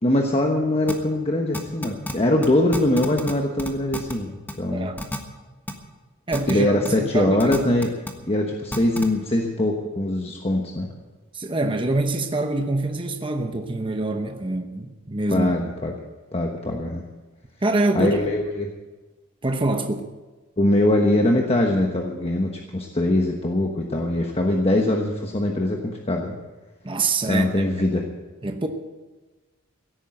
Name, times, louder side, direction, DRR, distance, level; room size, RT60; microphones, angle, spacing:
voice 1, 0.0-4.9 6.5-7.9 8.2-10.9 15.3-15.9 16.3-17.0 17.9-18.7 20.6-26.4 27.2-28.0, left 1 dB, 25° left, 1 dB, 1.2 m, -22 dB
sound 1, 0.9-1.0 1.5-2.1 2.4-2.5 2.7-3.3 3.6-4.1 4.5-4.6 5.0-5.2 5.7-5.8 6.3-6.5 6.8-6.9 7.4-8.1 8.7-9.1, left 1 dB, 10° left, 1.4 m, -29 dB
voice 2, 4.7-5.1 6.3-6.7 7.0-7.6 11.3-15.5 17.6-18.4 19.4-20.1 26.8-27.7 28.4-28.7, right 2 dB, 25° right, 5 dB, 1.0 m, -25 dB
16.5 x 9.2 x 7.8 m, 1.2 s
head